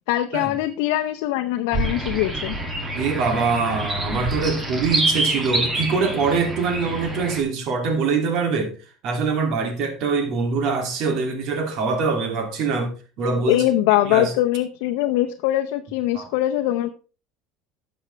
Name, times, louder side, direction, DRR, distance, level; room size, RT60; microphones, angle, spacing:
voice 1, 0.1-2.6 13.5-16.9, left 14 dB, 80° left, 0.7 m, -22 dB
sound 1, 1.7-7.4, right 1 dB, 20° right, 2.3 m, -26 dB
voice 2, 2.9-8.7 9.0-13.6 14.0-14.3 16.1-16.3, right 4 dB, 55° right, 2.7 m, -24 dB
12.0 x 7.1 x 3.4 m
supercardioid pair, 125°, 0 cm